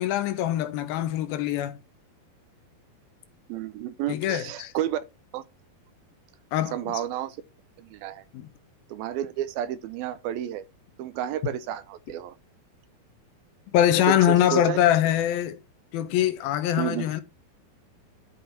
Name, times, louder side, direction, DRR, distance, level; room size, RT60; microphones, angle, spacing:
voice 1, 0.0-1.8 4.1-4.7 6.5-7.0 8.3-8.5 13.7-15.6 15.9-17.2, left 11 dB, 75° left, 2.7 m, -23 dB
voice 2, 3.5-5.0 5.3-5.4 6.7-7.4 7.8-8.2 8.9-10.6 11.0-12.4 14.0-14.8 16.8-17.1, right 11 dB, 80° right, 2.6 m, -31 dB
12.0 x 5.4 x 5.7 m
omnidirectional pair, 4.4 m